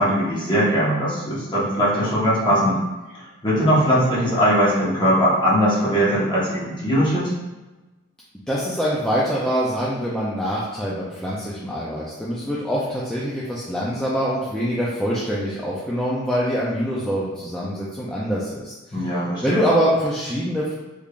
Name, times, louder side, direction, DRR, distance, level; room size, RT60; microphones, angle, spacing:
voice 1, 0.0-2.8 3.1-7.3 18.9-19.7, equal, 20° left, -8 dB, 1.2 m, -20 dB
voice 2, 8.5-19.0 19.4-20.7, equal, 5° left, -7 dB, 0.4 m, -24 dB
3.6 x 3.3 x 2.4 m, 1.1 s
head